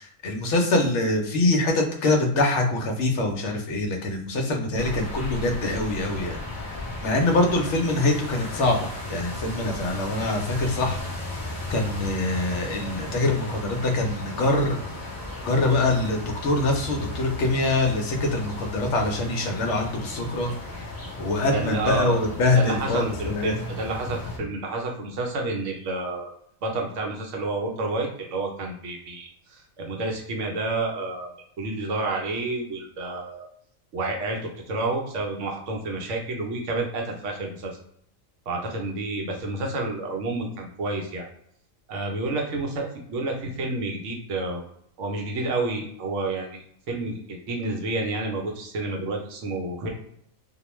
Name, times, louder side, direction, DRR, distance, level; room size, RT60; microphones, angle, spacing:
voice 1, 0.0-6.4 6.7-11.0 11.7-14.8 15.5-20.5 21.2-23.5, left 2 dB, 65° left, 2 dB, 0.9 m, -24 dB
sound 1, 4.7-24.4, left 2 dB, 35° left, 0.3 m, -35 dB
voice 2, 21.5-22.2 22.5-26.3 26.6-33.4 33.9-37.8 38.5-41.3 41.9-44.6 45.0-49.9, right 2 dB, 70° right, 1 dB, 0.9 m, -30 dB
2.4 x 2.1 x 3.0 m, 0.70 s
omnidirectional pair, 1.4 m